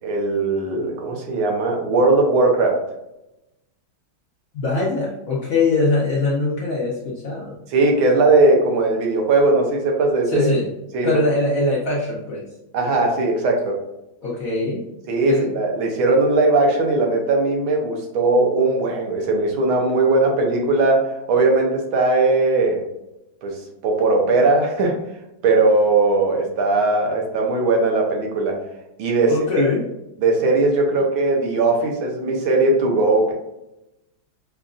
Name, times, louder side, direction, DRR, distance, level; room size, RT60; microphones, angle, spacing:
voice 1, 0.0-2.8 7.7-10.5 10.9-11.1 12.7-13.8 15.1-22.8 23.4-25.0 25.4-28.6 29.0-29.3 30.2-33.3, right 2 dB, 80° right, 1 dB, 1.6 m, -19 dB
voice 2, 4.5-7.6 10.3-10.7 11.0-12.5 14.2-14.8 15.3-15.6 29.3-29.8, left 3 dB, 60° left, -5 dB, 0.9 m, -22 dB
5.6 x 2.5 x 2.4 m, 0.92 s
omnidirectional pair, 2.2 m